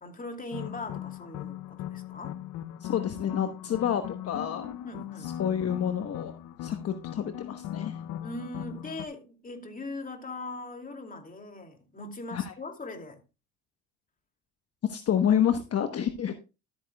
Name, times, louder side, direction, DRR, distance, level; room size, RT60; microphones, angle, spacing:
voice 1, 0.0-2.4 4.8-5.4 8.2-13.2, left 2 dB, 25° left, 2.6 m, -40 dB
sound 1, 0.5-9.1, left 11 dB, 70° left, 0.7 m, -39 dB
voice 2, 2.8-4.7 5.2-6.3 6.6-8.0 12.3-12.5 14.9-16.3, left 9 dB, 50° left, 1.1 m, -28 dB
13.0 x 8.8 x 2.3 m
supercardioid pair, 80°, 32 cm